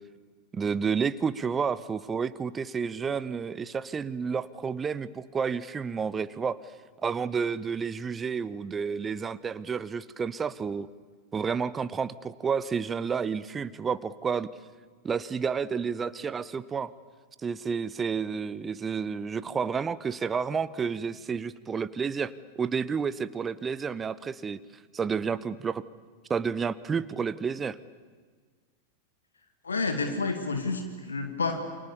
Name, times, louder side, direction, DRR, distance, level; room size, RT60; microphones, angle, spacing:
voice 1, 0.5-6.6 7.0-10.9 11.3-14.5 15.0-16.9 17.4-24.6 24.9-25.8 26.3-27.8, right 6 dB, 20° right, 17 dB, 0.8 m, -30 dB
voice 2, 29.6-31.6, left 3 dB, 75° left, 6 dB, 2.0 m, -29 dB
29.0 x 25.0 x 7.1 m, 1.6 s
figure-of-eight pair, 90°, 0 cm